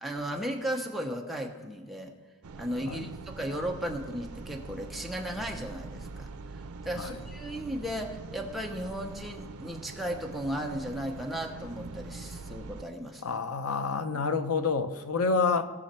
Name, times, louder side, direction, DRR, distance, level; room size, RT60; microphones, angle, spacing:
voice 1, 0.0-2.1 2.5-6.3 6.8-13.4, equal, ahead, 0.9 m, -35 dB
sound 1, 2.4-12.8, right 3 dB, 85° right, 0.5 m, -43 dB
voice 2, 13.2-15.7, left 4 dB, 80° left, 0.8 m, -28 dB
18.0 x 6.4 x 4.4 m
head